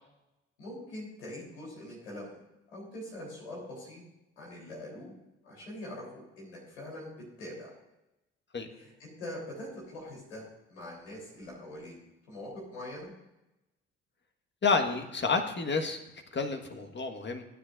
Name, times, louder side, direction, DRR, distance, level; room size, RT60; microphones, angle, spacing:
voice 1, 0.6-2.4 2.7-4.0 4.4-5.1 5.4-7.1 7.4-7.7 8.7-12.0 12.3-13.1, left 1 dB, 90° left, -4 dB, 3.9 m, -43 dB
voice 2, 14.6-16.0 16.3-17.4, left 4 dB, 35° left, 5 dB, 1.7 m, -29 dB
16.5 x 9.8 x 2.7 m, 0.93 s
hypercardioid pair, 45°, 32 cm